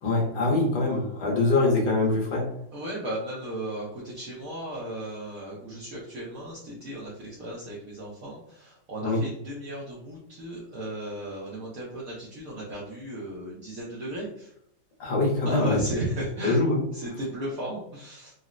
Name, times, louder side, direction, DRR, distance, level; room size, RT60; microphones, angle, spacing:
voice 1, 0.0-2.5 9.0-9.2 15.0-15.8 16.4-16.8, left 2 dB, 90° left, -3 dB, 1.6 m, -24 dB
voice 2, 2.7-14.5 15.4-16.6 16.9-18.3, right 1 dB, 65° right, -5 dB, 0.9 m, -35 dB
4.0 x 2.0 x 2.4 m, 0.74 s
omnidirectional pair, 1.9 m